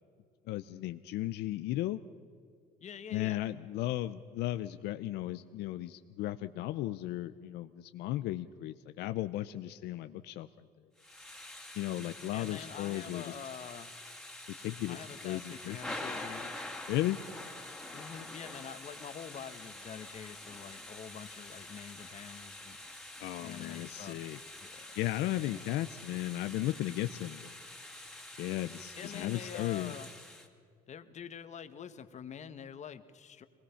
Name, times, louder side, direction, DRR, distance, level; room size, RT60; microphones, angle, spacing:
voice 1, 0.5-2.0 3.1-10.7 11.8-13.3 14.6-15.0 15.2-15.8 16.9-17.2 23.2-24.4 25.0-27.5 28.4-29.9, left 15 dB, 85° left, 11 dB, 0.6 m, -35 dB
voice 2, 2.8-3.5 12.3-13.9 14.9-16.5 17.9-22.8 23.4-24.2 24.6-25.0 25.2-25.6 28.9-30.1 30.9-33.4, left 8 dB, 45° left, 10 dB, 1.2 m, -46 dB
Thunder / Rain, 11.0-30.5, left 1 dB, ahead, 2.3 m, -46 dB
23.5 x 20.0 x 5.7 m, 2.2 s
cardioid pair, 110°, 17 cm